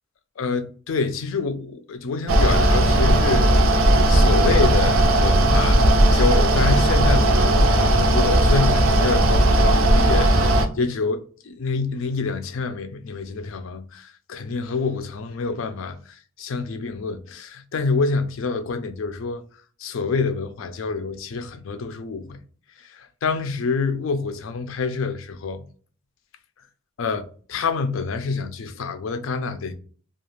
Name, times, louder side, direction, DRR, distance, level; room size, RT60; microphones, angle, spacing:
voice 1, 0.4-5.9 6.1-19.4 19.8-22.4 22.8-25.6 27.0-29.7, left 4 dB, 70° left, 0.4 m, -27 dB
Mechanical fan, 2.3-10.7, right 1 dB, 75° right, 0.5 m, -17 dB
2.4 x 2.3 x 3.1 m
head